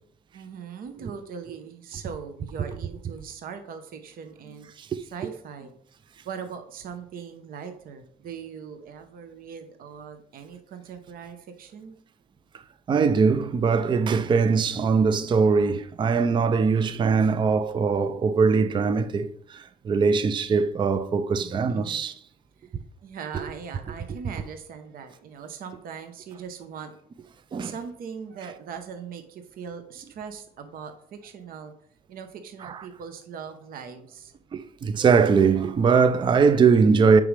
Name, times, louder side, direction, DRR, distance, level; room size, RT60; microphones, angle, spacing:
voice 1, 0.3-4.7 5.1-5.7 6.2-12.0 21.4-22.0 22.6-22.7 23.0-26.9 27.6-31.7 32.1-34.3, right 6 dB, 60° right, 0.9 m, -40 dB
voice 2, 12.9-22.1 23.3-23.4 27.5-27.7 32.6-32.8 34.5-37.2, right 5 dB, 30° right, 0.4 m, -21 dB
8.5 x 5.0 x 3.3 m
cardioid pair, 110°, 17 cm